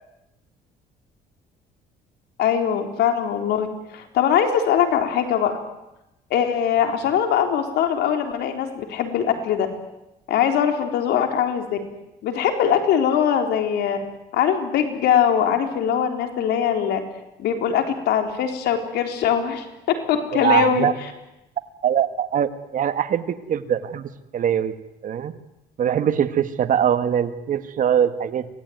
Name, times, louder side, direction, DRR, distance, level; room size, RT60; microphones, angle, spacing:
voice 1, 2.4-5.5 6.3-9.7 10.3-11.8 12.2-14.0 14.3-17.0 17.4-19.7 20.1-20.9, left 8 dB, 75° left, 5 dB, 3.8 m, -21 dB
voice 2, 20.3-20.9 21.8-24.7 25.0-25.3 25.8-28.5, right 9 dB, 50° right, 10 dB, 1.7 m, -22 dB
25.5 x 18.0 x 9.4 m, 0.93 s
cardioid pair, 110°, 17 cm